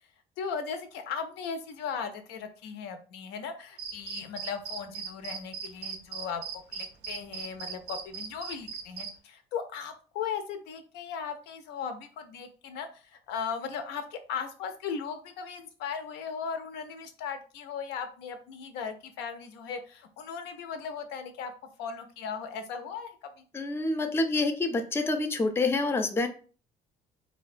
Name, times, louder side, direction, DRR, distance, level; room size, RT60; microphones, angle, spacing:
voice 1, 0.4-21.5 21.8-23.2, left 6 dB, 90° left, 7 dB, 0.5 m, -37 dB
sound 1, 3.8-9.1, right 6 dB, 80° right, 0.5 m, -38 dB
voice 2, 23.5-26.3, left 3 dB, 15° left, 7 dB, 0.4 m, -27 dB
2.5 x 2.2 x 2.4 m, 0.37 s
cardioid pair, 110°, 17 cm